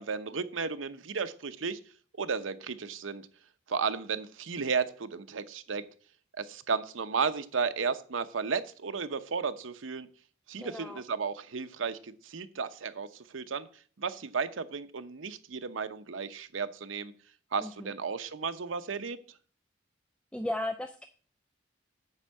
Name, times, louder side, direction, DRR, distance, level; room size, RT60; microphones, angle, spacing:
voice 1, 0.0-1.8 2.1-3.3 3.7-5.8 6.4-10.1 10.5-17.1 17.5-19.2, right 5 dB, 90° right, 10 dB, 0.8 m, -34 dB
voice 2, 10.6-11.0 17.6-17.7 20.3-21.1, left 1 dB, 5° left, 8 dB, 0.4 m, -35 dB
9.9 x 4.5 x 7.4 m, 0.43 s
head